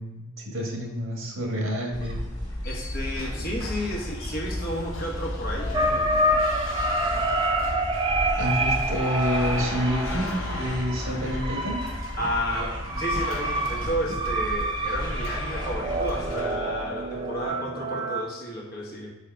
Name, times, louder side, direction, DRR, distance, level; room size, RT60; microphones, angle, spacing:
voice 1, 0.0-2.2 8.4-11.8, equal, 85° right, 0 dB, 1.7 m, -28 dB
sound 1, 1.9-16.4, equal, 20° left, 1.6 m, -34 dB
sound 2, 2.3-17.5, left 3 dB, 75° left, 0.8 m, -40 dB
voice 2, 2.6-6.2 12.2-19.1, equal, 50° left, -1 dB, 1.3 m, -32 dB
sound 3, 5.7-18.2, right 1 dB, 25° right, 0.4 m, -28 dB
5.0 x 4.8 x 4.6 m, 1.1 s
head